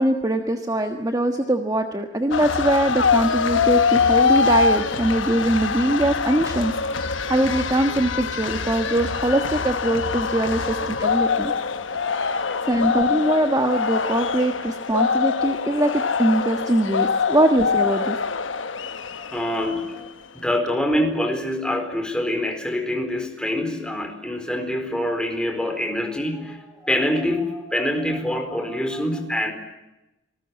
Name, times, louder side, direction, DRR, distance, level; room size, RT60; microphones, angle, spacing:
voice 1, 0.0-11.5 12.6-18.2, right 1 dB, 20° right, 5 dB, 1.4 m, -22 dB
sound 1, 2.3-20.1, left 5 dB, 80° left, 1.1 m, -24 dB
voice 2, 11.7-13.0 18.5-20.1 20.3-29.5, left 1 dB, 5° left, 5 dB, 4.4 m, -26 dB
27.0 x 19.5 x 8.8 m, 0.97 s
head